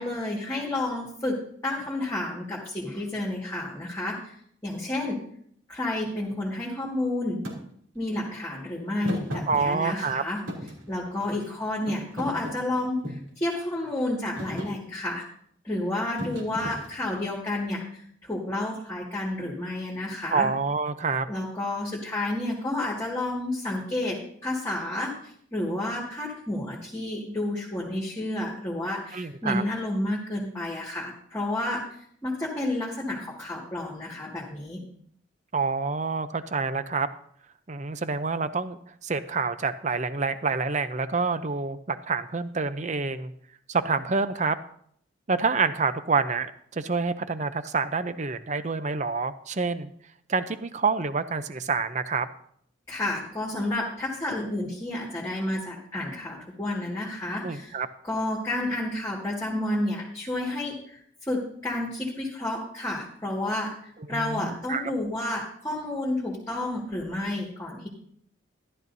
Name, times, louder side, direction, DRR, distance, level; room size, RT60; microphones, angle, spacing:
voice 1, 0.0-4.3 4.6-5.2 5.7-7.4 7.9-10.4 10.9-15.2 15.6-20.5 21.3-31.8 32.2-34.8 52.9-57.7 58.0-67.9, left 1 dB, 15° left, -5 dB, 2.0 m, -30 dB
Thump thud, 7.4-7.6 9.0-10.1 10.5-11.5 11.9-13.3 13.9-14.1 14.4-14.7 16.2-17.3, equal, 85° right, 2.9 m, -35 dB
voice 2, 9.5-10.2 20.3-21.3 29.1-29.6 35.5-37.1 37.7-43.3 43.7-44.6 45.3-49.9 50.3-52.3 57.4-57.9 64.1-64.9, right 4 dB, 35° right, 12 dB, 0.6 m, -27 dB
13.5 x 12.0 x 2.7 m, 0.66 s
head